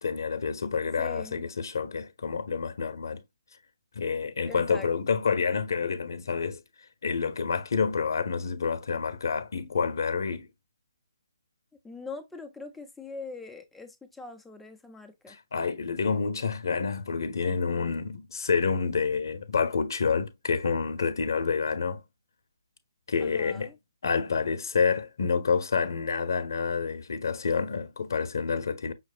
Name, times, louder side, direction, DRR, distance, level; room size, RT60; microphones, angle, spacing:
voice 1, 0.0-3.2 4.0-6.6 7.0-10.5 15.3-22.0 23.1-23.7 24.0-28.9, left 5 dB, 65° left, 0.7 m, -28 dB
voice 2, 1.0-1.4 4.4-5.2 11.8-15.4 23.2-23.8, left 4 dB, 5° left, 0.6 m, -42 dB
5.7 x 3.0 x 2.4 m
figure-of-eight pair, 145°, 2 cm